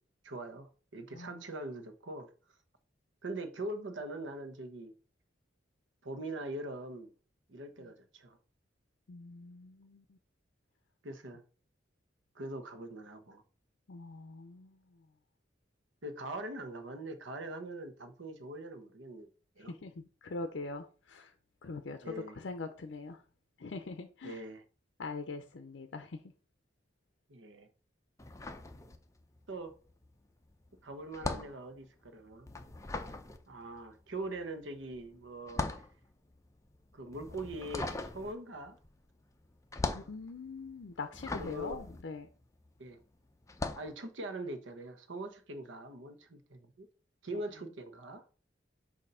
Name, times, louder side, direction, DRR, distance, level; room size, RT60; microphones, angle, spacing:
voice 1, 0.2-2.3 3.2-4.9 6.0-7.1 7.5-8.4 11.0-11.4 12.3-13.4 16.0-19.3 19.6-19.7 22.0-22.4 24.2-24.6 27.3-27.7 29.5-29.8 30.8-32.5 33.5-35.8 36.9-38.8 39.9-40.1 41.4-41.8 42.8-43.0 43.8-46.9 47.2-48.2, right 1 dB, 85° right, 1.0 m, -42 dB
voice 2, 1.1-1.4 9.1-10.2 13.9-14.8 19.6-21.3 21.6-23.2 23.6-24.4 25.0-26.2 39.9-42.3, left 3 dB, 70° left, 0.5 m, -43 dB
sound 1, 28.2-29.4 29.7-42.9 43.4-43.9, left 2 dB, 15° left, 0.5 m, -40 dB
6.7 x 2.7 x 5.5 m
head